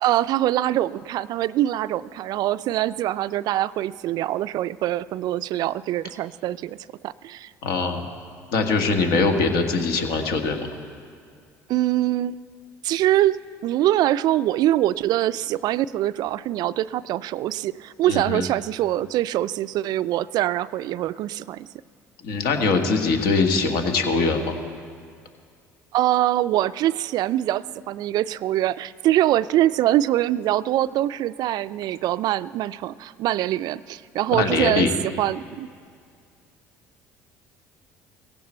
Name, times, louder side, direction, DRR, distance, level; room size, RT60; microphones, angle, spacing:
voice 1, 0.0-6.8 7.0-7.5 11.7-12.4 12.8-21.7 25.9-34.9 35.2-35.7, right 13 dB, 60° right, 17 dB, 0.4 m, -23 dB
voice 2, 7.6-8.1 8.5-10.7 18.1-18.5 22.2-24.6 34.3-34.9, left 4 dB, 70° left, 5 dB, 1.5 m, -22 dB
16.5 x 15.5 x 4.4 m, 2.2 s
hypercardioid pair, 65°, 8 cm